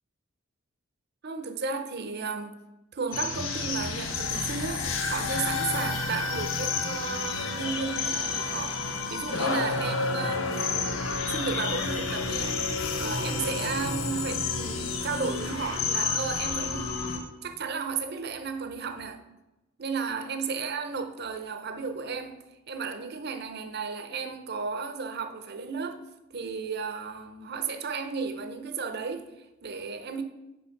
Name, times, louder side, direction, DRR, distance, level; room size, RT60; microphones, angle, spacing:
voice 1, 1.2-2.5 2.9-11.0 11.3-12.7 12.9-17.0 17.4-19.2 19.8-26.0 26.3-30.2, right 5 dB, 55° right, 0.7 m, -34 dB
sound 1, 3.1-17.2, left 4 dB, 85° left, 1.0 m, -30 dB
6.3 x 5.0 x 5.8 m
head